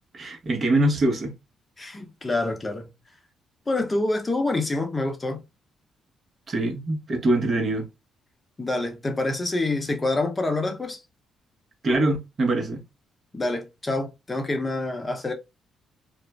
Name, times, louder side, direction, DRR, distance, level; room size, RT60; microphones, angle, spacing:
voice 1, 0.1-1.3 6.5-7.9 11.8-12.8, right 2 dB, 40° right, 0.8 m, -23 dB
voice 2, 1.8-2.9 3.7-5.4 8.6-11.0 13.3-15.3, left 2 dB, 20° left, 0.7 m, -27 dB
2.4 x 2.1 x 3.2 m
cardioid pair, 90°, 0 cm